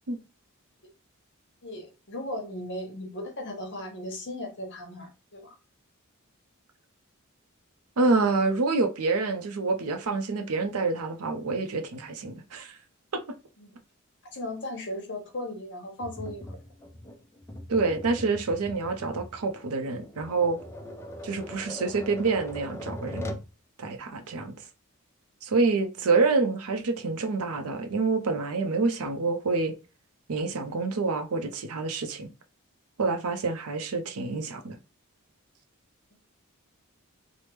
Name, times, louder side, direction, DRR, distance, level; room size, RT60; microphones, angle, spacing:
voice 1, 1.6-5.6 13.6-13.8 14.3-16.5 20.8-20.9, left 1 dB, 55° left, 0.9 m, -37 dB
voice 2, 8.0-12.8 17.7-20.6 21.2-23.3 23.8-24.5 25.4-29.7 30.3-32.3 33.0-34.8, right 3 dB, 90° right, 0.6 m, -27 dB
Tap, 16.0-23.5, left 1 dB, 10° left, 0.4 m, -40 dB
3.4 x 2.0 x 3.0 m
head